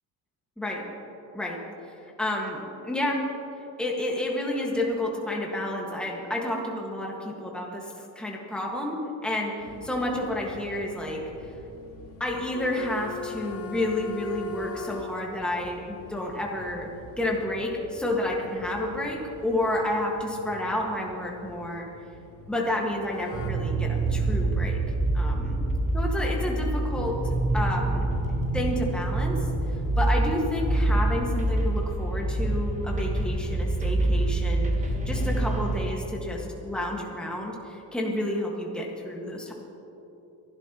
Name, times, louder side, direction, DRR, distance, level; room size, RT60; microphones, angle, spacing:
voice 1, 2.2-3.2 3.8-11.2 12.2-16.9 17.2-21.9 22.5-24.8 25.1-25.6 25.9-28.1 28.5-29.5 30.0-39.5, left 1 dB, ahead, -2 dB, 1.7 m, -30 dB
sound 1, 9.6-23.5, left 6 dB, 80° left, 2.4 m, -44 dB
sound 2, 23.3-35.9, right 2 dB, 20° right, 1.2 m, -26 dB
27.0 x 12.0 x 3.0 m, 3.0 s
cardioid pair, 130°, 40 cm